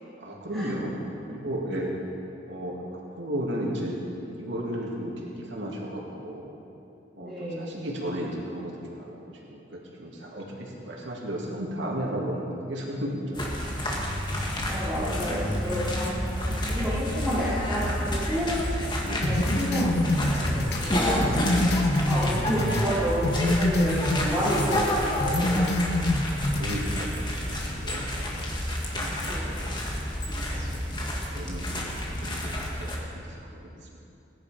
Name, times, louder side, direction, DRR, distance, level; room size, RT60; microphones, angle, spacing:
voice 1, 0.2-1.9 2.5-2.8 3.2-6.5 7.2-9.2 9.5-9.6 10.0-13.7 19.0-19.5 26.2-28.7 28.9-29.8 30.5-31.8 32.2-33.2 33.5-33.7, equal, 90° right, -3 dB, 2.5 m, -34 dB
voice 2, 7.2-7.8 14.7-18.5 19.1-25.7 29.3-29.8, equal, ahead, -14 dB, 3.4 m, -31 dB
sound 1, 13.3-33.0, equal, 25° left, 1.8 m, -29 dB
sound 2, 19.2-22.9 23.2-24.9 25.2-26.9, left 1 dB, 60° left, 0.9 m, -26 dB
18.0 x 10.5 x 5.2 m, 2.8 s
head